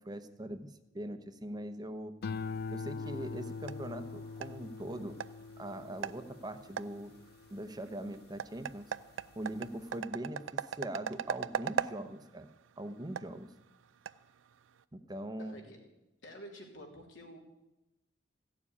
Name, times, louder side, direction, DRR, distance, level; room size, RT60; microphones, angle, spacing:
voice 1, 0.0-2.1 2.7-5.2 5.6-7.1 7.5-8.9 9.4-12.5 12.8-13.5 14.9-15.6, right 1 dB, 20° right, 9 dB, 0.8 m, -41 dB
sound 1, 2.2-8.7 9.2-9.7, left 4 dB, 55° left, 0.4 m, -43 dB
sound 2, 3.0-14.8, right 7 dB, 85° right, 0.5 m, -41 dB
voice 2, 15.4-15.9 16.2-17.4, equal, 85° left, 1 dB, 3.2 m, -49 dB
15.0 x 7.2 x 9.7 m, 0.94 s
head